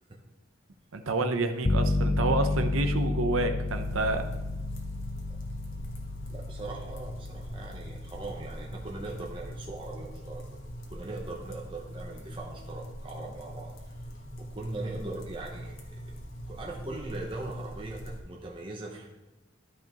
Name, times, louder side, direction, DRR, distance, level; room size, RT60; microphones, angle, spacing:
voice 1, 0.9-4.2, right 2 dB, 90° right, 8 dB, 0.8 m, -28 dB
sound 1, 1.6-12.2, left 2 dB, 30° left, 0.4 m, -33 dB
sound 2, 3.7-18.2, equal, 80° left, 1.4 m, -42 dB
voice 2, 6.3-10.6 10.9-14.0 14.4-16.1 16.5-19.1, right 2 dB, 25° right, -2 dB, 0.9 m, -40 dB
12.5 x 5.6 x 3.0 m, 1.0 s
head